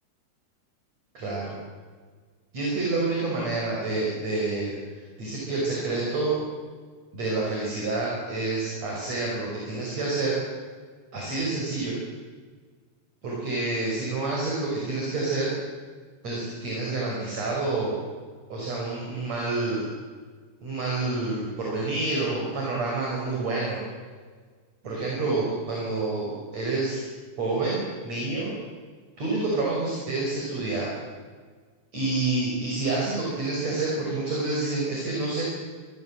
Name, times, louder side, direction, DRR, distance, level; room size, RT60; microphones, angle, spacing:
voice 1, 1.1-1.6 2.5-4.7 5.2-6.4 7.1-10.4 11.1-12.0 13.2-15.5 16.2-18.0 18.5-19.9 20.6-23.8 24.8-27.1 27.4-28.5 29.2-30.9 31.9-35.4, right 3 dB, 35° right, -3 dB, 7.0 m, -28 dB
27.5 x 22.0 x 7.7 m, 1.6 s
omnidirectional pair, 5.1 m